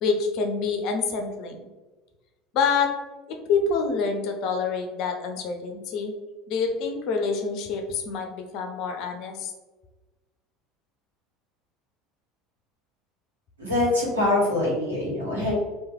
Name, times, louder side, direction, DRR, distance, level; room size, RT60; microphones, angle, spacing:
voice 1, 0.0-1.7 2.5-2.9 3.3-6.1 6.5-9.5, left 5 dB, 50° left, 3 dB, 0.6 m, -27 dB
voice 2, 13.6-15.5, left 2 dB, 85° right, -6 dB, 1.3 m, -24 dB
3.1 x 2.5 x 3.6 m, 1.2 s
figure-of-eight pair, 70°, 0 cm